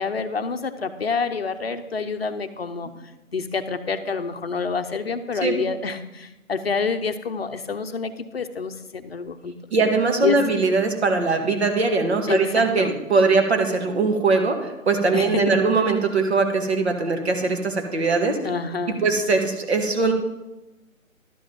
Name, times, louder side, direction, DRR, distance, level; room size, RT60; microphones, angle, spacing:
voice 1, 0.0-2.9 3.3-9.5 10.2-10.4 12.3-12.4 12.8-12.9 15.1-15.4 18.4-19.0, left 5 dB, 45° left, 8 dB, 0.8 m, -27 dB
voice 2, 9.7-18.4 19.0-20.1, right 3 dB, 50° right, 4 dB, 1.8 m, -21 dB
11.5 x 4.9 x 7.6 m, 1.0 s
figure-of-eight pair, 160°, 42 cm